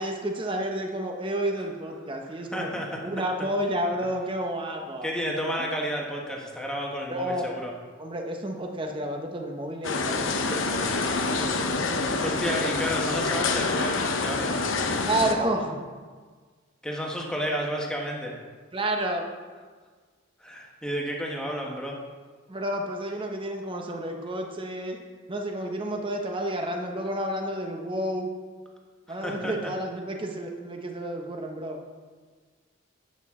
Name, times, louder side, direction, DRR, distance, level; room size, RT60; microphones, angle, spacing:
voice 1, 0.0-2.7 3.0-5.1 7.1-7.6 8.0-12.9 15.0-15.8 18.7-19.3 22.5-25.0 25.3-28.3 29.1-31.8, right 1 dB, 25° right, 2 dB, 1.0 m, -31 dB
voice 2, 2.2-3.1 5.0-7.7 12.0-14.6 16.8-18.3 20.4-22.0 29.1-29.5, equal, 5° left, -1 dB, 1.3 m, -31 dB
sound 1, 9.8-15.3, left 3 dB, 70° left, 0.8 m, -27 dB
11.5 x 8.0 x 3.7 m, 1.5 s
head